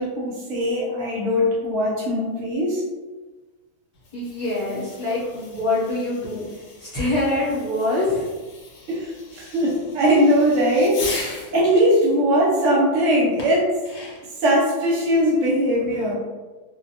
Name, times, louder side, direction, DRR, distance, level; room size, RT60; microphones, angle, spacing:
voice 1, 0.0-2.8 8.9-13.7 14.4-16.1, equal, 65° right, -4 dB, 0.9 m, -20 dB
Fireworks, 3.9-11.6 13.4-14.4, left 3 dB, 75° left, 1.1 m, -38 dB
voice 2, 4.1-6.5 6.8-8.2, left 2 dB, 35° left, -9 dB, 0.7 m, -24 dB
2.5 x 2.1 x 2.7 m, 1.3 s
omnidirectional pair, 1.6 m